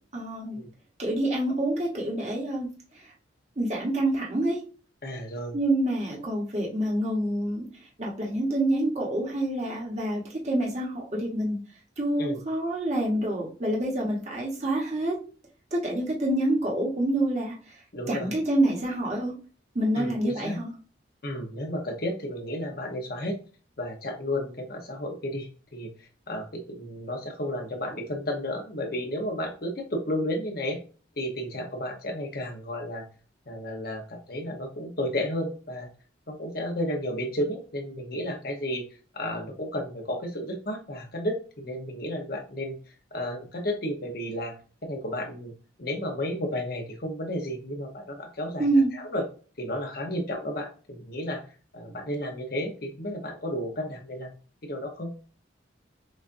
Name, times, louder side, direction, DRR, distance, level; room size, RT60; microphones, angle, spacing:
voice 1, 0.1-0.6 1.0-2.7 2.9-3.1 3.6-4.6 5.5-7.7 8.0-11.6 12.0-15.2 15.7-17.8 18.1-19.3 19.7-20.7 48.6-48.9, right 1 dB, 35° right, -2 dB, 1.2 m, -27 dB
voice 2, 5.0-5.6 12.2-12.4 17.9-18.3 19.9-20.6 21.2-23.4 23.8-30.8 31.2-33.0 33.5-35.9 36.3-38.8 39.1-44.5 44.8-45.5 45.8-48.7 48.9-49.2 49.6-51.4 51.7-54.3 54.6-55.1, left 1 dB, 50° left, 3 dB, 0.9 m, -32 dB
6.2 x 2.5 x 2.6 m, 0.38 s
head